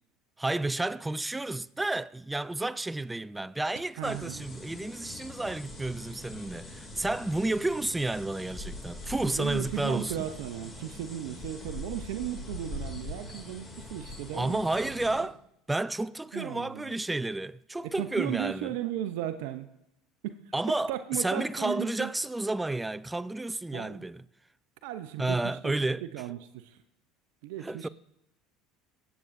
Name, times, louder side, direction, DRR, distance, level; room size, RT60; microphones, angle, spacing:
voice 1, 0.4-10.2 14.3-15.4 15.7-18.7 20.5-24.2 25.2-26.0 27.6-27.9, right 2 dB, 10° right, 0.4 m, -31 dB
sound 1, 4.0-15.2, left 2 dB, 20° left, 2.5 m, -43 dB
voice 2, 4.0-4.4 9.2-14.9 15.2-15.3 16.3-17.0 17.8-19.7 20.2-20.4 20.9-22.1 23.7-24.0 24.8-25.7 26.0-26.8 27.4-27.9, right 12 dB, 75° right, 0.6 m, -36 dB
23.0 x 8.0 x 2.6 m
hypercardioid pair, 80°, 0 cm